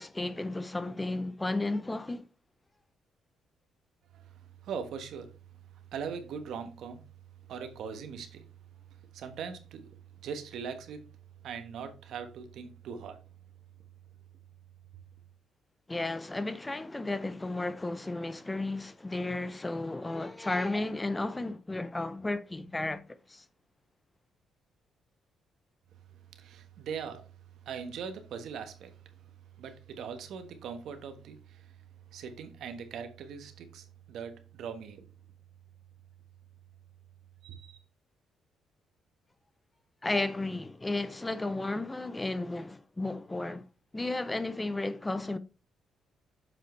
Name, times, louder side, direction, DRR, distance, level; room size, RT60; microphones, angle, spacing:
voice 1, 0.0-2.2 15.9-23.0 23.3-23.4 40.0-43.6 43.9-45.4, left 2 dB, 15° left, 0.6 m, -33 dB
voice 2, 4.1-5.3 5.7-7.0 7.5-8.5 9.1-9.9 10.2-11.1 11.4-13.2 26.1-27.3 27.6-29.2 29.6-31.8 32.1-35.1 37.4-37.8, right 6 dB, 75° right, 1.3 m, -41 dB
7.7 x 5.7 x 3.2 m
cardioid pair, 90°, 0 cm